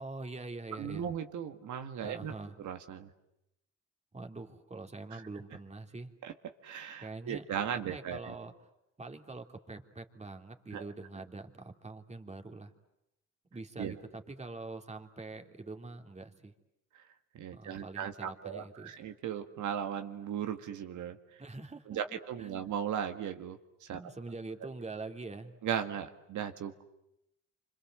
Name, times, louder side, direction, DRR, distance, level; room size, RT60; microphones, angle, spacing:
voice 1, 0.0-1.1 2.0-2.6 4.1-6.1 7.0-8.5 9.0-12.7 13.5-16.5 17.5-19.1 21.4-22.0 22.4-22.7 23.9-25.6, right 3 dB, 20° right, 6 dB, 2.9 m, -44 dB
voice 2, 0.7-2.3 2.6-3.1 5.1-5.2 6.2-6.3 6.6-8.3 10.7-10.8 13.8-14.0 17.3-21.2 21.9-24.0 25.6-26.8, right 9 dB, 75° right, 6 dB, 1.9 m, -37 dB
29.5 x 25.5 x 7.7 m, 0.86 s
cardioid pair, 90°, 30 cm